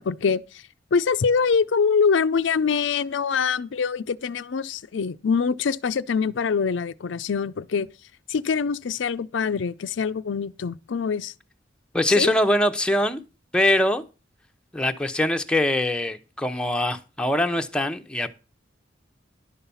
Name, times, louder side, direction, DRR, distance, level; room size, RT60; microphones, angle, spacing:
voice 1, 0.0-7.9 8.3-11.3 12.2-12.3, left 5 dB, 75° left, 0.5 m, -24 dB
voice 2, 11.9-13.2 13.5-14.0 14.7-18.3, left 1 dB, 5° left, 0.8 m, -23 dB
11.0 x 5.6 x 7.0 m
head